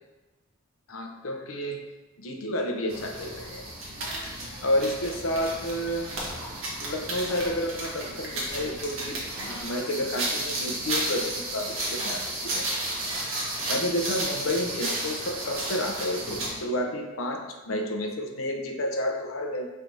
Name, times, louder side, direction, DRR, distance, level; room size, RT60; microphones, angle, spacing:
voice 1, 0.9-1.8 2.2-3.7 4.2-4.3 4.6-6.1 6.8-12.7 13.7-19.7, left 1 dB, 75° left, 2 dB, 0.5 m, -30 dB
sound 1, 2.9-16.6, right 1 dB, 70° right, 1.0 m, -33 dB
3.3 x 2.6 x 4.5 m, 1.2 s
head